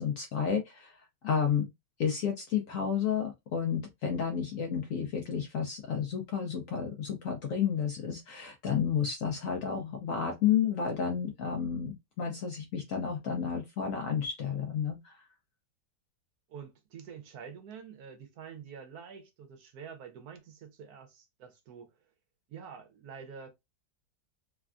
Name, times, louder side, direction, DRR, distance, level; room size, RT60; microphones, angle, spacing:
voice 1, 0.0-1.7 2.0-15.2, left 7 dB, 70° left, 0.8 m, -31 dB
voice 2, 16.5-21.9 22.5-23.5, right 6 dB, 70° right, 1.1 m, -47 dB
3.3 x 2.2 x 2.4 m
omnidirectional pair, 1.8 m